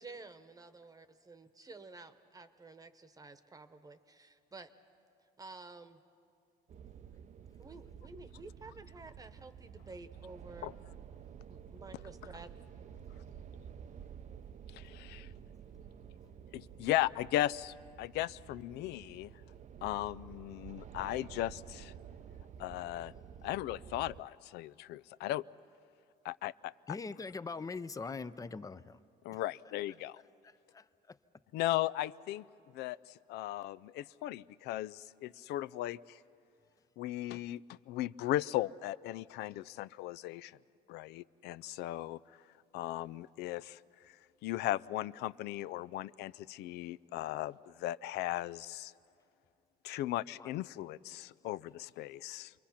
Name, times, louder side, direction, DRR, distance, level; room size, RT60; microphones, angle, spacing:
voice 1, 0.0-4.7 5.4-6.0 7.6-10.7 11.5-12.5, right 3 dB, 20° right, 10 dB, 1.1 m, -51 dB
sound 1, 6.7-24.2, right 8 dB, 45° right, 0.6 m, -51 dB
voice 2, 14.7-15.3 16.5-19.3 19.8-21.9 22.6-23.1 23.4-25.4 26.2-27.0 29.2-30.2 31.5-32.4 32.7-36.2 37.0-37.6 37.9-40.6 40.9-42.2 42.7-43.8 44.4-48.9 49.8-52.5, left 15 dB, 80° left, 18 dB, 0.4 m, -37 dB
voice 3, 26.9-29.0 29.3-29.4 30.4-31.2 50.3-50.5 51.1-51.3, left 4 dB, 20° left, 14 dB, 0.6 m, -43 dB
28.5 x 22.5 x 5.8 m, 2.6 s
cardioid pair, 110°, 17 cm